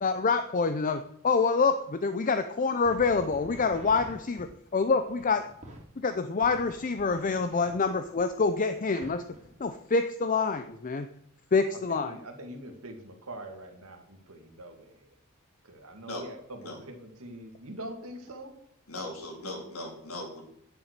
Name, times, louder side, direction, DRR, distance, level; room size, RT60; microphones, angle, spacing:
voice 1, 0.0-5.4 6.0-9.2 9.6-11.1 11.5-12.2, left 4 dB, 40° left, 10 dB, 0.5 m, -26 dB
sound 1, 2.8-5.8 6.4-9.7, equal, 35° right, 2.8 m, -49 dB
voice 2, 11.9-15.0 15.6-18.5, right 1 dB, 90° right, 4 dB, 2.1 m, -43 dB
voice 3, 18.9-20.4, left 1 dB, 85° left, 1 dB, 3.4 m, -38 dB
10.0 x 7.2 x 6.7 m, 0.69 s
head